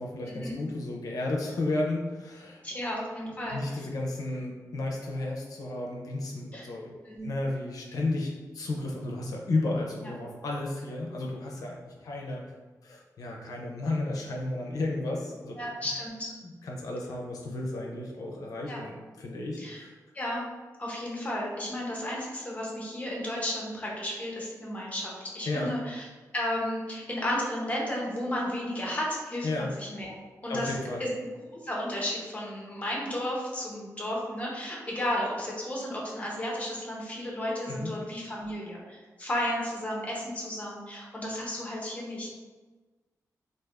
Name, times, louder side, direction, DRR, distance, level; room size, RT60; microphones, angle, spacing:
voice 1, 0.0-2.6 3.5-6.9 7.2-12.4 12.8-15.7 16.6-19.9 25.5-25.7 29.4-29.7 30.5-31.0 37.7-38.0, left 2 dB, 75° left, -1 dB, 0.5 m, -33 dB
voice 2, 2.6-3.6 6.5-6.7 7.0-7.3 10.0-10.1 15.6-16.3 18.7-18.8 19.6-19.8 20.1-20.4 20.8-26.0 26.3-30.1 30.4-31.1 31.6-42.3, left 1 dB, 20° left, -3 dB, 0.7 m, -33 dB
3.3 x 2.5 x 2.4 m, 1.3 s
wide cardioid pair, 145°, 6 cm